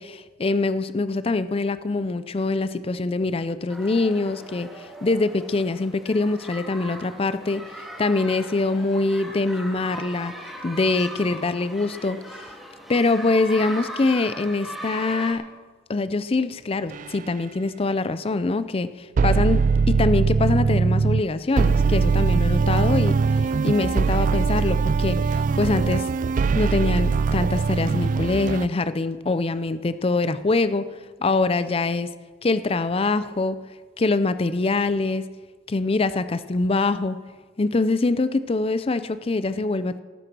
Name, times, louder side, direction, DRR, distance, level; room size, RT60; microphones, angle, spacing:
voice 1, 0.0-10.3 10.6-12.2 12.9-15.5 15.9-26.1 26.5-30.9 31.2-32.1 32.4-33.6 34.0-35.2 35.7-37.2 37.6-40.0, left 3 dB, 30° left, 14 dB, 0.5 m, -24 dB
sound 1, 3.7-15.3, equal, ahead, 2.1 m, -39 dB
sound 2, 16.9-17.1 19.2-21.2 21.6-28.7, right 5 dB, 45° right, 0.3 m, -21 dB
18.5 x 8.1 x 6.1 m, 1.4 s
head